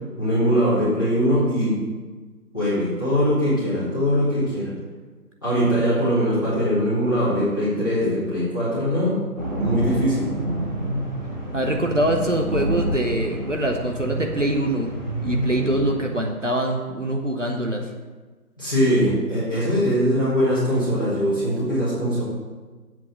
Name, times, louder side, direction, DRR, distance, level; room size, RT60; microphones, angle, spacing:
voice 1, 0.2-1.7 2.5-4.7 5.4-9.3 9.6-10.3 18.6-22.2, equal, 15° left, -12 dB, 2.2 m, -21 dB
sound 1, 9.4-16.0, right 1 dB, 30° right, 1.8 m, -28 dB
voice 2, 11.5-14.9 15.2-17.9, right 1 dB, 50° right, 2 dB, 1.0 m, -24 dB
7.5 x 5.8 x 7.4 m, 1.3 s
figure-of-eight pair, 170°, 46 cm